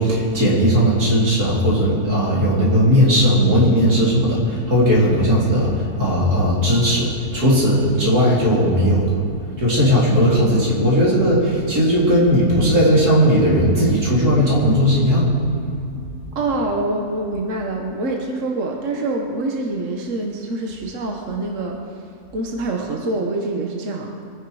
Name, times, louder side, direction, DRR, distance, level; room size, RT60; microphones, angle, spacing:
voice 1, 0.0-9.2 9.6-15.3 15.6-16.3, equal, 90° right, -6 dB, 4.3 m, -17 dB
voice 2, 16.3-21.8 22.3-24.1, right 2 dB, 55° right, 1 dB, 1.6 m, -25 dB
23.0 x 10.0 x 4.9 m, 2.4 s
omnidirectional pair, 1.6 m